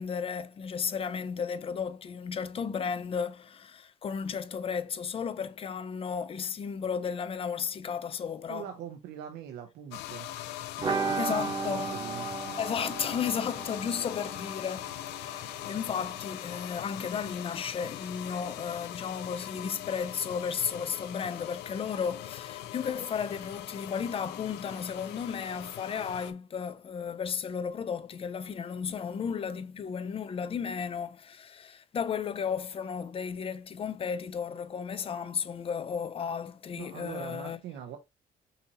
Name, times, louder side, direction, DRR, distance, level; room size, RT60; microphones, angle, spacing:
voice 1, 0.0-8.7 11.2-11.9 12.6-37.6, left 7 dB, 35° left, 0.5 m, -34 dB
voice 2, 8.5-10.3 10.8-12.4 36.7-38.0, right 9 dB, 80° right, 0.8 m, -43 dB
sound 1, 9.9-26.3, left 13 dB, 85° left, 0.5 m, -41 dB
sound 2, 10.8-16.4 16.7-16.8 17.1-17.2, right 5 dB, 30° right, 1.1 m, -36 dB
5.7 x 2.8 x 2.9 m
cardioid pair, 110°, 17 cm